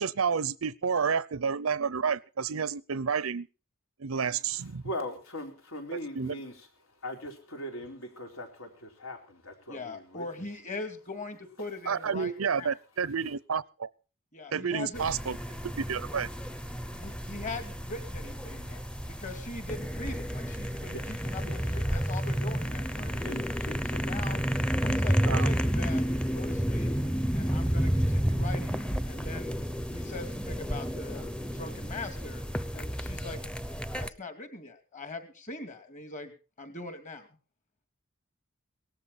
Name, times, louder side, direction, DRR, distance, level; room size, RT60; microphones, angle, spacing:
voice 1, 0.0-3.5 4.0-4.8 6.2-6.3 11.9-13.9 14.5-15.4 15.6-16.3 25.3-25.5, right 6 dB, 90° right, 0.7 m, -30 dB
voice 2, 4.5-10.5 11.6-11.7 20.6-21.6 22.3-22.4 23.0-24.0 24.3-24.5, left 1 dB, 85° left, 4.0 m, -41 dB
voice 3, 9.7-12.7 14.3-15.0 17.0-23.2 23.9-24.4 24.8-26.9 27.3-29.6 29.9-32.4 32.7-33.4 33.7-36.3 36.6-37.3, left 3 dB, 35° left, 2.6 m, -41 dB
sound 1, 14.9-34.1, equal, 5° left, 0.7 m, -31 dB
18.5 x 14.0 x 4.1 m
head